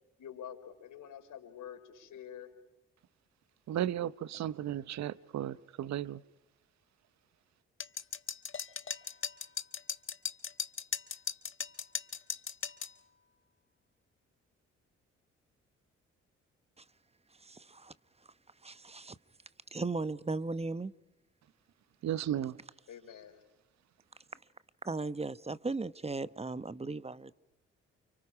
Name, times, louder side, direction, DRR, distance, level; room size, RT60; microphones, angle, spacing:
voice 1, 0.2-2.5 22.9-23.4, left 9 dB, 65° left, 4.1 m, -47 dB
voice 2, 3.7-6.2 22.0-22.6, right 11 dB, 55° right, 0.8 m, -34 dB
sound 1, 7.8-12.9, left 7 dB, 35° left, 1.5 m, -37 dB
voice 3, 17.4-17.9 18.6-19.2 19.7-20.9 24.8-27.3, right 3 dB, 20° right, 1.0 m, -37 dB
29.5 x 29.5 x 4.9 m
hypercardioid pair, 45°, 33 cm